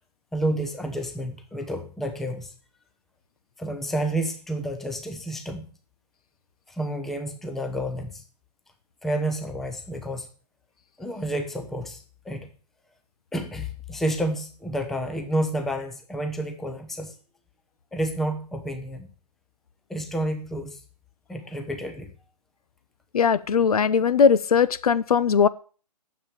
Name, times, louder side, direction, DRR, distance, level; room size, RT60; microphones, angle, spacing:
voice 1, 0.3-2.5 3.6-5.7 6.7-8.2 9.0-10.3 11.0-12.5 13.3-17.2 17.9-19.1 19.9-20.8 21.3-22.1, right 1 dB, ahead, 5 dB, 0.6 m, -30 dB
voice 2, 23.1-25.5, left 6 dB, 65° left, 17 dB, 0.7 m, -19 dB
9.5 x 7.3 x 7.2 m, 0.40 s
hypercardioid pair, 150°, 21 cm